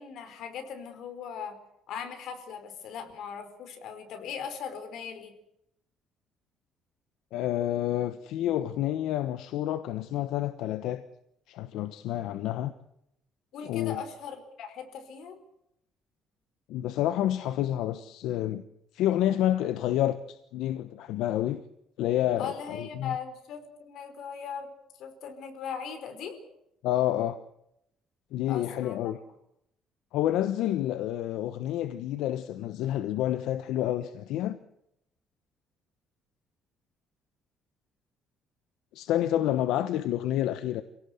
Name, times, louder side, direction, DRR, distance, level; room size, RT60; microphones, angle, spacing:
voice 1, 0.0-1.6 1.9-5.3 13.5-15.3 22.4-24.7 25.0-26.4 28.5-29.0, left 7 dB, 60° left, 4.8 m, -39 dB
voice 2, 7.3-11.0 11.5-12.7 13.6-14.0 16.7-18.6 18.9-21.6 22.0-23.2 26.8-27.4 28.3-29.2 30.1-34.6 38.9-40.8, left 12 dB, 80° left, 1.2 m, -29 dB
28.0 x 17.5 x 8.1 m
cardioid pair, 180°, 0 cm